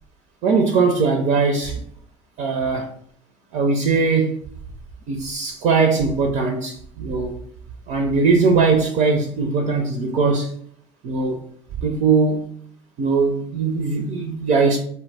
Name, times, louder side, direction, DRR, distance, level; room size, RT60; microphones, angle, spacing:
voice 1, 0.4-1.8 2.4-2.9 3.5-4.4 5.1-7.3 7.9-10.5 11.0-11.4 11.8-12.5 13.0-14.8, right 4 dB, 50° right, 3 dB, 0.4 m, -20 dB
2.1 x 2.0 x 3.3 m, 0.64 s
hypercardioid pair, 65°, 15 cm